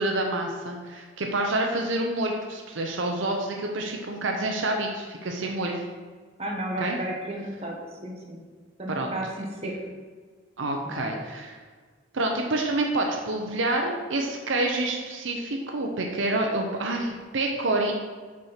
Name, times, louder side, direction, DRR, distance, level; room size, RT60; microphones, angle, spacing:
voice 1, 0.0-5.8 6.8-7.0 8.9-9.1 10.6-11.6 12.1-17.9, right 2 dB, 75° right, 2 dB, 0.8 m, -28 dB
voice 2, 6.4-8.4 8.8-9.7 10.8-11.1, right 1 dB, 30° right, -1 dB, 1.3 m, -33 dB
6.2 x 4.4 x 5.7 m, 1.5 s
head